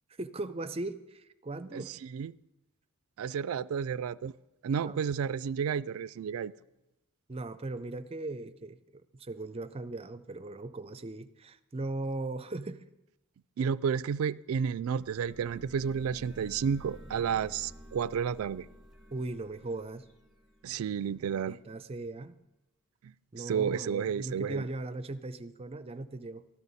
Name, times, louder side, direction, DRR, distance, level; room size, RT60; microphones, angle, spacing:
voice 1, 0.2-1.9 4.8-5.0 7.3-12.8 19.1-20.1 21.3-22.4 23.3-26.5, right 2 dB, 30° right, 0.5 m, -38 dB
voice 2, 1.7-2.3 3.2-4.3 4.6-6.5 13.6-18.7 20.6-21.6 23.0-24.7, right 7 dB, 85° right, 0.3 m, -31 dB
sound 1, 14.7-21.3, equal, ahead, 1.8 m, -52 dB
13.0 x 13.0 x 4.1 m
head